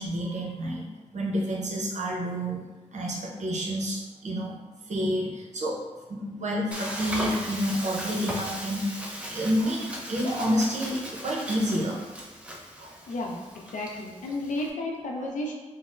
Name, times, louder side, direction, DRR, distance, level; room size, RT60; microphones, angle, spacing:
voice 1, 0.0-2.6 2.9-4.6 4.9-5.8 6.1-12.0 12.8-13.0, equal, 65° right, -3 dB, 0.7 m, -29 dB
Frying (food), 6.7-14.7, equal, 10° right, 0.5 m, -37 dB
voice 2, 13.1-13.4 13.7-15.5, left 2 dB, 85° left, 0 dB, 0.4 m, -32 dB
4.0 x 2.0 x 2.4 m, 1.2 s
wide cardioid pair, 75°, 13 cm